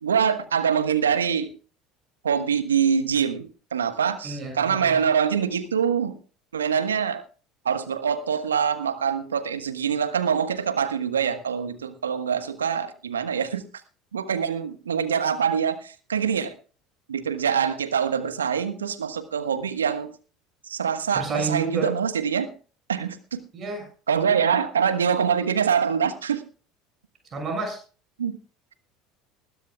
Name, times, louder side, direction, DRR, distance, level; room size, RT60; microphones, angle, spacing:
voice 1, 0.0-1.5 2.2-6.2 6.5-7.2 7.6-13.7 14.1-16.5 17.1-20.1 20.7-22.5 22.9-23.4 24.1-26.4 28.2-28.4, right 7 dB, 80° right, 10 dB, 1.4 m, -24 dB
voice 2, 4.2-5.0 21.1-21.9 23.5-23.8 27.3-27.8, right 3 dB, 35° right, 3 dB, 6.6 m, -30 dB
20.5 x 13.0 x 2.4 m, 0.36 s
figure-of-eight pair, 70°, 0 cm